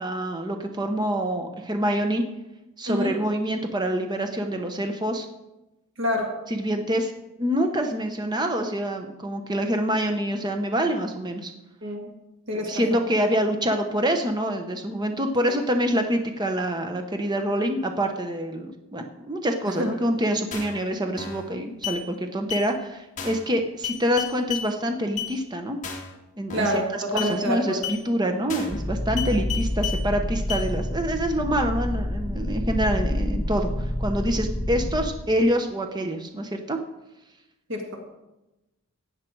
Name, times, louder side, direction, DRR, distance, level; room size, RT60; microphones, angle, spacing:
voice 1, 0.0-2.2 2.8-5.3 6.5-7.1 7.4-11.5 12.6-25.8 26.4-36.8, equal, 20° right, 5 dB, 0.8 m, -26 dB
voice 2, 6.0-6.3 11.8-12.1 12.5-12.8 19.7-19.9 26.5-26.9 27.1-27.8 37.7-37.8, equal, 55° right, 2 dB, 1.9 m, -26 dB
sound 1, 20.5-20.8 21.2-21.5 21.8-22.0 22.5-22.7 23.2-23.5 23.8-24.7 25.2-25.3 25.8-26.1 26.5-26.8 27.2-27.3 27.8-28.0 28.5-28.8 29.2-30.0 30.5-30.7, left 8 dB, 35° left, 2.1 m, -32 dB
sound 2, 28.7-35.1, left 1 dB, 20° left, 1.1 m, -28 dB
15.0 x 9.3 x 4.6 m, 0.99 s
head